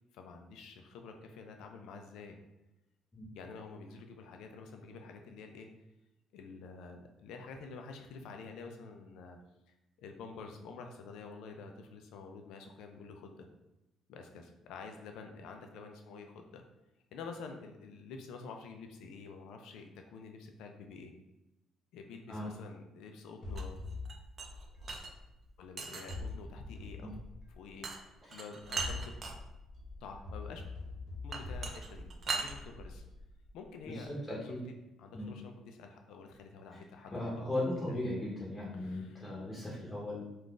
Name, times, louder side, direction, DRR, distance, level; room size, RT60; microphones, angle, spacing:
voice 1, 0.1-2.4 3.3-5.7 6.3-9.4 9.7-13.5 14.1-16.6 17.1-21.1 21.9-23.9 25.6-27.2 27.6-29.2 30.0-30.6 31.2-33.0 33.5-34.5 35.0-37.4 37.9-38.3 38.7-39.3, left 4 dB, 85° left, 4 dB, 0.3 m, -48 dB
sound 1, 23.4-25.6 26.1-27.9 28.6-33.7, left 3 dB, 60° left, 0.9 m, -44 dB
sound 2, 23.5-25.1 25.8-26.3 27.8-28.0 28.3-29.3 31.3-32.5, right 4 dB, 45° right, 0.4 m, -39 dB
voice 2, 33.9-34.6 35.1-35.3 36.7-36.8 37.1-40.3, left 1 dB, 15° left, -5 dB, 0.8 m, -37 dB
2.4 x 2.3 x 3.7 m, 0.94 s
cardioid pair, 100°, 0 cm